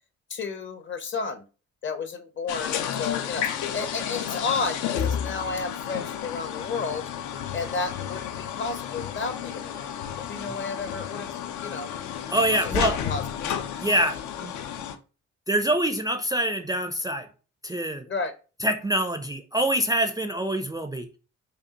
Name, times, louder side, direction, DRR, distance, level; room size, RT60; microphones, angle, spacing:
voice 1, 0.3-1.4 1.8-7.0 7.5-9.9 10.2-11.3 11.6-11.9 12.6-13.6 18.0-18.3, left 4 dB, 40° left, 0.7 m, -32 dB
sound 1, 2.5-14.9, left 9 dB, 75° left, 0.5 m, -32 dB
voice 2, 12.3-13.0 13.8-14.5 15.5-17.3 17.6-18.0 18.6-21.1, right 1 dB, 15° right, 0.4 m, -25 dB
5.2 x 2.3 x 2.8 m
cardioid pair, 90°, 30 cm